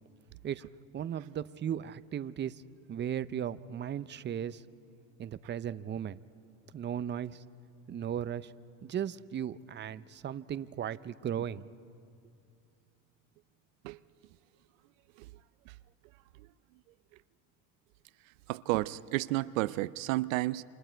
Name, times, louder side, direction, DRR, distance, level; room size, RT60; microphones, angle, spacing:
voice 1, 0.9-2.6 2.9-4.6 5.2-6.2 6.7-7.4 7.9-8.5 8.8-11.7, right 9 dB, 30° right, 0.6 m, -36 dB
voice 2, 18.5-20.6, right 18 dB, 90° right, 0.5 m, -31 dB
28.5 x 26.0 x 4.6 m
supercardioid pair, 90°, 38 cm